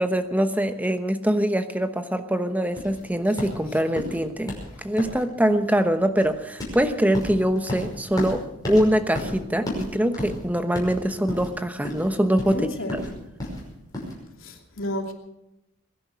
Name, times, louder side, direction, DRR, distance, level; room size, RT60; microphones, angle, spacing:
voice 1, 0.0-4.6 4.8-12.7, equal, 5° right, 8 dB, 1.0 m, -23 dB
sound 1, 2.7-14.1, left 1 dB, 20° left, 5.6 m, -34 dB
voice 2, 12.5-13.2 14.4-15.1, left 1 dB, 65° left, 2 dB, 2.9 m, -32 dB
22.0 x 11.0 x 6.2 m, 0.89 s
head